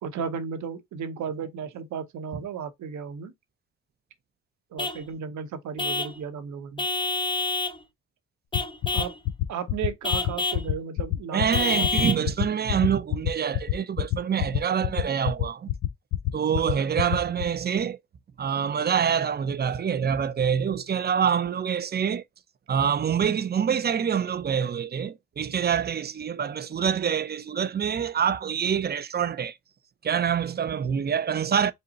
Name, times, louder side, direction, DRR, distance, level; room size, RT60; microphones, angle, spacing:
voice 1, 0.0-3.3 4.7-6.8 8.9-9.1 9.5-12.2 16.8-16.9 27.0-27.1, right 6 dB, 70° right, 0.9 m, -34 dB
Vehicle horn car horn honking / Truck, 4.8-5.0 5.8-6.2 6.8-7.8 8.5-9.2 10.0-10.7 11.5-12.3, left 3 dB, 15° left, 0.8 m, -28 dB
sound 1, 8.5-17.4, left 14 dB, 70° left, 0.7 m, -25 dB
voice 2, 11.3-15.7 16.3-18.0 18.4-22.2 22.7-29.6 30.0-31.7, right 7 dB, 35° right, 0.5 m, -26 dB
5.3 x 2.0 x 4.0 m
cardioid pair, 90°, 30 cm